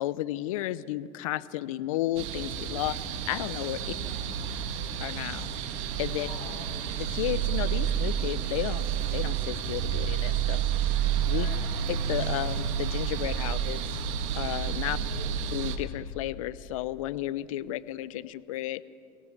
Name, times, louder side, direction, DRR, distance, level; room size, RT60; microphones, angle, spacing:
voice 1, 0.0-3.0 3.3-3.8 5.0-5.5 6.0-6.3 7.1-8.9 9.1-10.6 11.3-11.5 11.9-13.9 14.3-15.0 15.5-19.0, left 14 dB, 85° left, 18 dB, 0.6 m, -33 dB
sound 1, 2.2-15.8, right 8 dB, 75° right, 1.9 m, -30 dB
voice 2, 3.8-4.6 6.1-6.7 11.2-11.8 14.8-15.4, left 6 dB, 50° left, 1 dB, 6.6 m, -46 dB
23.5 x 17.5 x 7.3 m, 2.5 s
hypercardioid pair, 90°, 17 cm